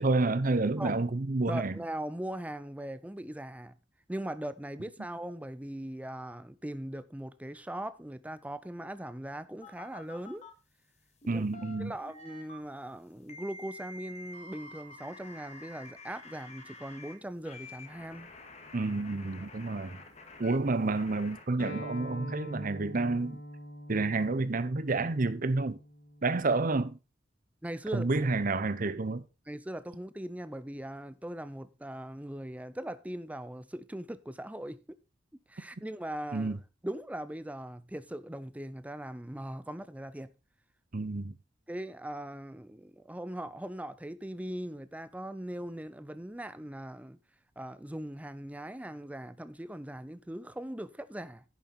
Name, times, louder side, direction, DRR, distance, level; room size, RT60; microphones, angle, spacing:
voice 1, 0.0-1.8 11.3-11.9 18.7-20.0 20.4-23.4 23.9-25.8 26.2-27.0 27.9-29.2 36.3-36.6 40.9-41.4, right 3 dB, 45° right, 0.7 m, -29 dB
voice 2, 1.5-3.7 4.1-10.4 11.3-11.4 11.8-18.3 27.6-28.3 29.5-34.8 35.5-36.6 36.8-40.3 41.7-47.2 47.6-51.4, right 1 dB, 10° right, 0.6 m, -40 dB
sound 1, 9.6-10.5 11.2-12.6 13.3-17.1 17.4-21.4, left 2 dB, 35° left, 1.9 m, -49 dB
Acoustic guitar, 21.6-26.8, equal, 65° left, 2.3 m, -45 dB
10.5 x 6.9 x 4.2 m
head